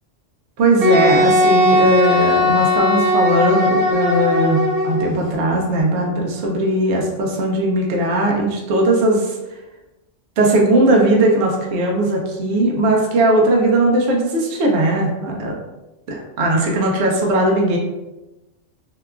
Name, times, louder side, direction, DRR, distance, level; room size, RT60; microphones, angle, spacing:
voice 1, 0.6-9.4 10.4-15.6 16.1-17.8, right 1 dB, 70° right, -1 dB, 0.8 m, -18 dB
Wind instrument woodwind instrument, 0.8-5.1, left 1 dB, 85° right, 0.3 m, -17 dB
2.8 x 2.2 x 2.3 m, 1.0 s
omnidirectional pair, 1.2 m